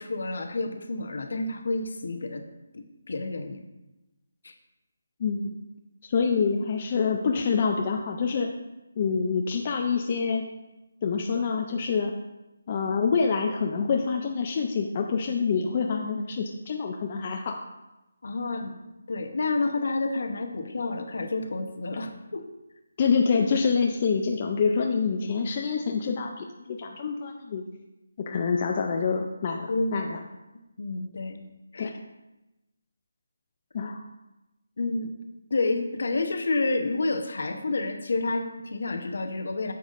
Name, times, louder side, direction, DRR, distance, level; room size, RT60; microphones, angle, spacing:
voice 1, 0.0-2.4 2.7-3.7 4.4-4.5 18.2-18.7 19.1-22.5 29.7-30.1 30.8-31.4 31.7-31.9 34.8-35.1 35.5-39.7, left 3 dB, 55° left, 6 dB, 0.8 m, -29 dB
voice 2, 5.2-5.5 6.0-8.5 9.0-10.5 11.0-12.1 12.7-17.6 23.0-27.6 28.2-30.2 31.8-31.9 33.7-34.0, left 5 dB, 25° left, 2 dB, 0.3 m, -26 dB
10.0 x 6.9 x 2.5 m, 0.99 s
hypercardioid pair, 180°, 0 cm